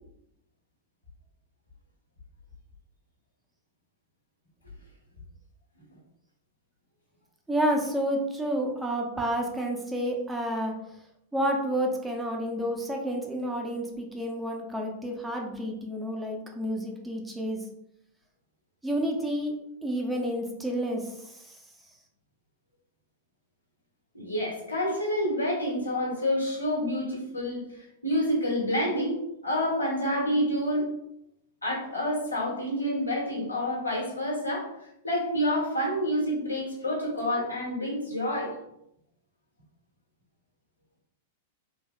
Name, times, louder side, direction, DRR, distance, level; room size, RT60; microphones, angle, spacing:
voice 1, 7.5-10.7 11.3-17.6 18.8-19.6 19.8-21.6, equal, 10° right, 1 dB, 0.6 m, -30 dB
voice 2, 24.1-30.9 31.6-34.7 35.0-38.5, equal, 85° left, -3 dB, 1.2 m, -28 dB
3.4 x 3.0 x 2.2 m, 0.79 s
figure-of-eight pair, 95°, 0 cm